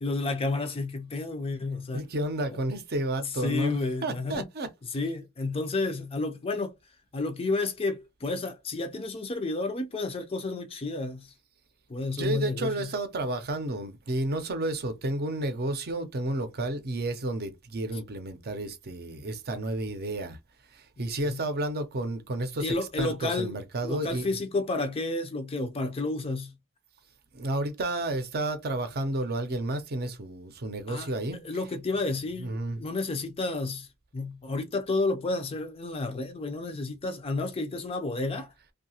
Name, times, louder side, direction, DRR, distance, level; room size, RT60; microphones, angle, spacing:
voice 1, 0.0-2.1 2.5-2.6 3.2-4.5 4.9-6.7 7.1-11.3 11.9-12.9 21.2-21.4 22.6-23.5 23.8-26.6 30.9-31.1 31.4-33.9 34.1-38.5, left 3 dB, 25° left, 0.4 m, -31 dB
voice 2, 1.9-4.7 12.2-20.4 20.7-24.3 27.3-31.4 32.4-32.8, right 1 dB, 45° right, 0.6 m, -31 dB
2.7 x 2.3 x 2.8 m
head